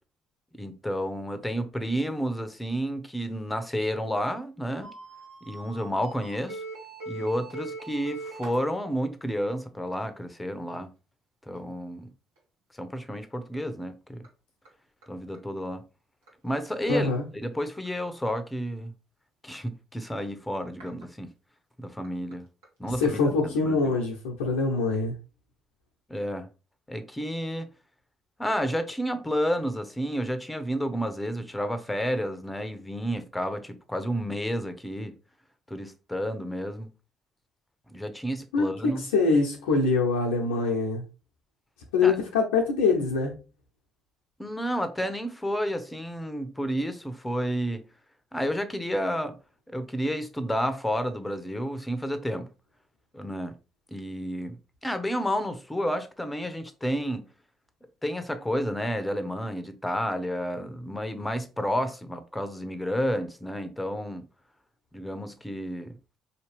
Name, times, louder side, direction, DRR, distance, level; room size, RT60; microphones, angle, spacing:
voice 1, 0.6-4.9 5.5-6.6 7.1-10.9 11.5-12.1 12.8-14.2 15.1-15.8 16.4-17.1 17.4-18.9 19.4-21.3 21.8-22.5 22.8-24.0 26.1-26.5 26.9-27.7 28.4-35.1 35.7-36.9 37.9-39.0 42.0-42.2 44.4-47.8 48.3-49.4 49.7-52.5 53.1-53.6 53.9-54.6 54.8-57.3 58.0-64.3 64.9-66.0, equal, 10° left, 0.8 m, -31 dB
sound 1, 4.8-8.6 11.6-11.7 12.4-12.5 14.2-14.3 14.7-14.8 15.0-15.1 15.3-15.4 16.3-16.4 16.8-16.9 17.8-17.9 20.8-21.0 22.0-22.1 22.3-22.4 22.6-22.7, right 3 dB, 90° right, 1.3 m, -41 dB
voice 2, 16.9-17.2 23.0-25.1 38.5-41.0 41.9-43.3, left 4 dB, 85° left, 0.7 m, -24 dB
4.2 x 2.9 x 3.3 m
hypercardioid pair, 50°, 0 cm